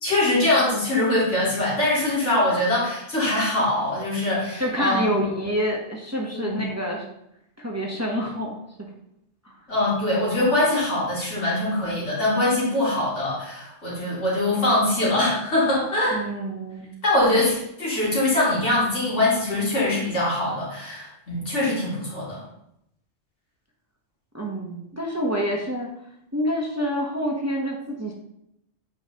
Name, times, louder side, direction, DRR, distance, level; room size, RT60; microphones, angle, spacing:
voice 1, 0.0-5.2 6.3-6.7 9.7-16.2 17.0-22.4, left 1 dB, 85° left, -7 dB, 3.0 m, -23 dB
voice 2, 4.6-7.0 7.6-8.6 9.4-9.5 16.1-16.9 24.3-25.9 26.3-28.1, equal, 15° right, -1 dB, 0.9 m, -27 dB
8.3 x 5.0 x 2.9 m, 0.78 s
omnidirectional pair, 1.2 m